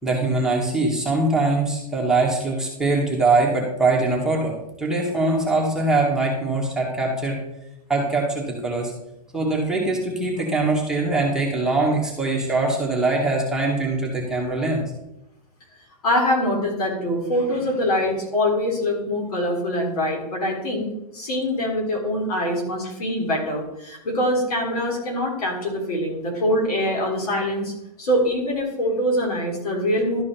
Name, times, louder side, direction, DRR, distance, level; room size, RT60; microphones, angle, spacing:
voice 1, 0.0-7.4 7.9-8.9 9.3-14.8, right 2 dB, 5° right, -3 dB, 1.8 m, -22 dB
voice 2, 16.0-27.7 28.0-30.2, left 1 dB, 70° left, -1 dB, 3.7 m, -24 dB
12.5 x 4.9 x 4.4 m, 0.88 s
hypercardioid pair, 140°, 20 cm